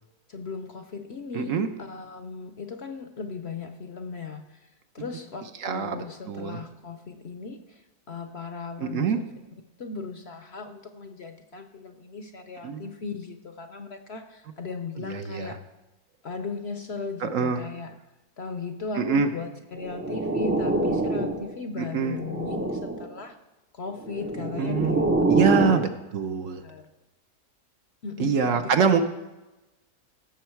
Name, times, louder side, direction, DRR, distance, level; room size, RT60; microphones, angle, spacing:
voice 1, 0.3-9.3 9.8-15.6 16.2-18.0 18.4-23.4 23.7-25.8 26.6-26.9 28.0-29.0, left 4 dB, 55° left, 8 dB, 0.8 m, -37 dB
voice 2, 1.3-1.7 5.6-6.6 8.8-9.2 12.6-12.8 15.0-15.5 17.2-17.6 19.0-19.3 21.8-22.2 24.6-26.6 28.2-29.0, right 6 dB, 60° right, 7 dB, 1.1 m, -25 dB
sound 1, 19.8-21.6 22.0-23.1 24.0-25.9, right 2 dB, 15° right, 0.5 m, -26 dB
16.5 x 7.0 x 4.5 m, 1.0 s
omnidirectional pair, 1.6 m